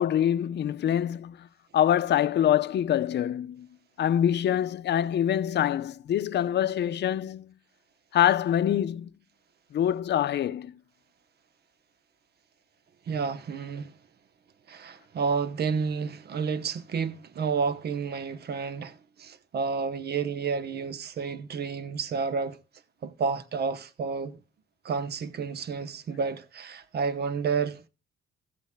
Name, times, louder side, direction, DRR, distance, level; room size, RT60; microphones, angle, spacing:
voice 1, 0.0-1.5 1.7-3.7 4.0-7.5 8.1-9.1 9.7-10.7, left 10 dB, 60° left, 0.7 m, -25 dB
voice 2, 13.1-13.9 14.7-22.6 23.0-24.4 24.8-27.8, right 5 dB, 55° right, 1.0 m, -30 dB
16.0 x 13.5 x 2.3 m
cardioid pair, 90°, 20 cm